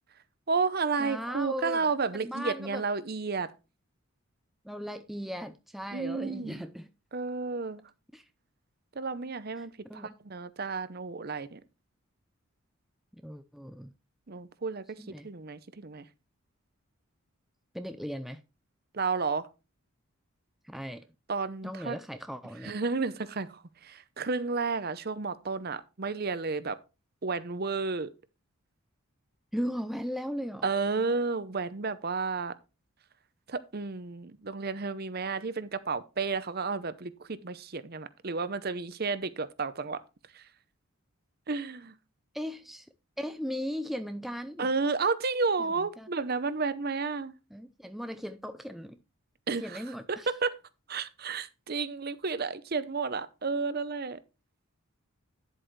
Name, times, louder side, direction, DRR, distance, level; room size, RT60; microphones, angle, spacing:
voice 1, 0.5-3.5 5.9-6.6 7.1-7.8 9.0-11.6 14.3-16.0 18.9-19.5 21.3-22.0 22.6-26.8 27.2-28.1 30.6-32.5 33.5-40.0 40.3-40.4 41.5-41.9 44.6-47.3 49.5-49.8 50.1-50.6 50.9-54.2, right 4 dB, 45° right, 0.7 m, -32 dB
voice 2, 1.0-1.9 2.1-2.8 4.6-6.9 8.1-8.2 9.6-10.1 13.2-13.9 15.0-15.3 17.7-18.4 20.6-21.0 21.6-22.7 29.5-30.7 31.0-31.1 42.3-42.9 43.2-44.7 45.6-45.7 46.0-46.1 47.5-49.0 49.6-50.3, equal, ahead, 0.4 m, -37 dB
10.5 x 7.7 x 3.2 m
head